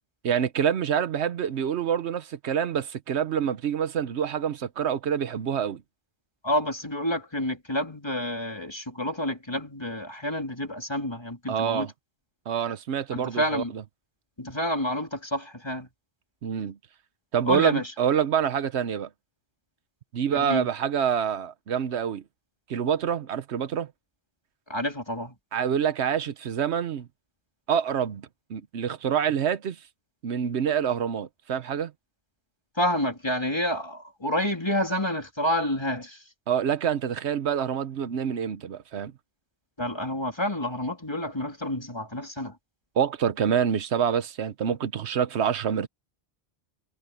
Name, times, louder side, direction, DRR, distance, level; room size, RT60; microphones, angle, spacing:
voice 1, 0.2-5.8 11.5-11.9 12.5-13.8 16.4-16.8 17.3-19.1 20.1-22.2 22.7-23.9 25.5-27.1 27.7-29.8 30.2-31.9 36.5-39.1 43.0-45.9, right 8 dB, 80° right, 1.1 m, -26 dB
voice 2, 6.4-11.9 13.1-13.7 14.4-15.9 17.5-17.9 20.3-20.7 24.7-25.4 32.8-36.2 39.8-42.6, left 1 dB, 25° left, 3.1 m, -29 dB
omnidirectional pair, 1.1 m